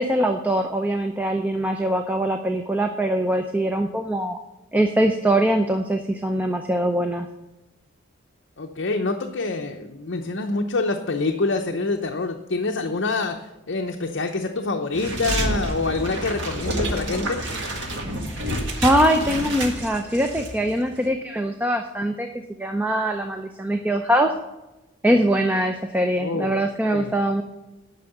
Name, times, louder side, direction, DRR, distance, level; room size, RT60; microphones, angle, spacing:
voice 1, 0.0-4.4 4.7-7.3 18.3-18.4 18.8-22.3 22.6-24.3 25.0-27.4, right 1 dB, 10° right, 5 dB, 0.5 m, -22 dB
voice 2, 8.6-13.4 13.7-17.4 26.2-26.6 26.9-27.1, left 3 dB, 60° left, 3 dB, 0.7 m, -26 dB
sound 1, 14.9-20.5 20.8-21.0, right 1 dB, 60° right, 1.9 m, -28 dB
9.3 x 6.2 x 7.8 m, 0.99 s
head